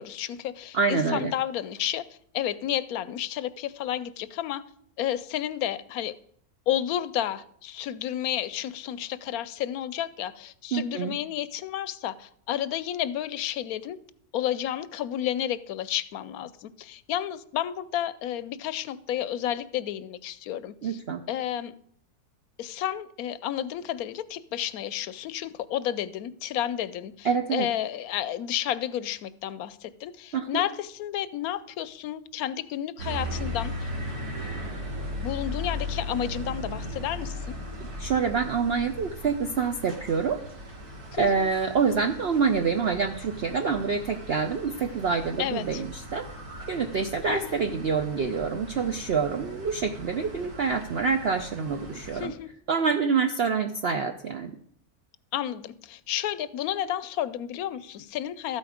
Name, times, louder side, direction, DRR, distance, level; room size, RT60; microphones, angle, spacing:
voice 1, 0.0-2.0 2.3-4.6 5.0-6.1 6.7-14.0 14.3-21.0 21.3-21.7 22.6-33.9 35.2-37.5 41.1-41.5 45.4-45.8 47.3-47.6 52.1-52.5 55.3-58.6, left 11 dB, 75° left, 17 dB, 1.0 m, -31 dB
voice 2, 0.7-1.3 10.7-11.2 20.8-21.2 27.2-27.7 30.3-30.5 38.0-40.4 41.2-46.3 46.7-52.3 52.7-54.6, right 5 dB, 55° right, 7 dB, 0.7 m, -26 dB
sound 1, 33.0-52.3, left 1 dB, 75° right, 2.7 m, -38 dB
13.5 x 8.4 x 5.0 m, 0.64 s
omnidirectional pair, 1.6 m